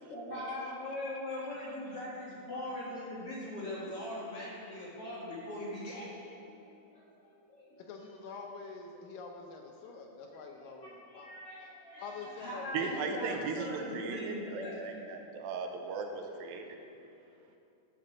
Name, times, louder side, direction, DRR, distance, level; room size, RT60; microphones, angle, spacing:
voice 1, 0.1-7.7 8.9-9.0 10.6-14.8, left 1 dB, 50° left, -6 dB, 2.1 m, -41 dB
voice 2, 7.8-11.3 12.0-13.4, left 4 dB, 75° left, 2 dB, 2.2 m, -46 dB
voice 3, 12.7-16.7, right 5 dB, 85° right, 3 dB, 2.5 m, -37 dB
11.0 x 5.8 x 6.4 m, 2.7 s
omnidirectional pair, 4.3 m